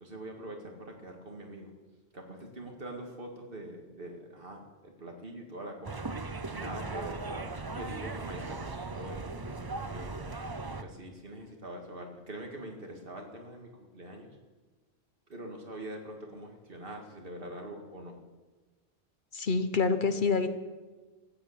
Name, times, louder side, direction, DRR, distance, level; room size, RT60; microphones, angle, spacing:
voice 1, 0.0-1.7 2.1-6.0 6.5-7.4 7.7-10.2 10.8-14.4 15.3-18.2, right 1 dB, 60° right, 2 dB, 2.2 m, -44 dB
sound 1, 5.8-10.8, right 3 dB, 25° right, 0.6 m, -38 dB
voice 2, 19.3-20.5, left 4 dB, 55° left, 9 dB, 1.0 m, -27 dB
14.5 x 8.7 x 8.1 m, 1.3 s
omnidirectional pair, 1.1 m